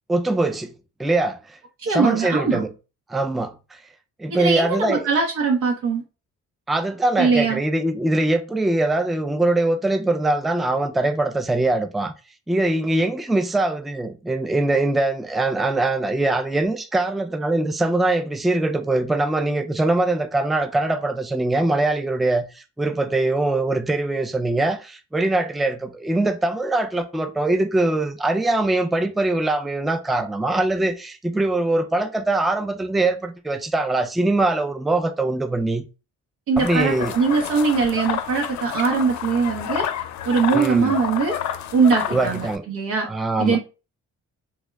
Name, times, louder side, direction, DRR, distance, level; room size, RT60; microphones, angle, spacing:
voice 1, 0.1-0.7 1.0-1.6 1.9-2.7 3.1-3.5 4.2-5.1 6.7-12.1 12.5-35.8 36.6-37.1 40.5-41.0 42.1-42.7 43.0-43.6, right 2 dB, ahead, 0.3 m, -22 dB
voice 2, 1.8-2.6 4.3-6.0 7.2-7.6 36.5-39.9 40.3-41.4 41.7-43.1 43.4-43.6, right 5 dB, 85° right, 0.8 m, -21 dB
sound 1, 36.6-42.6, left 10 dB, 65° left, 0.5 m, -30 dB
3.5 x 2.0 x 3.3 m
cardioid pair, 90°, 30 cm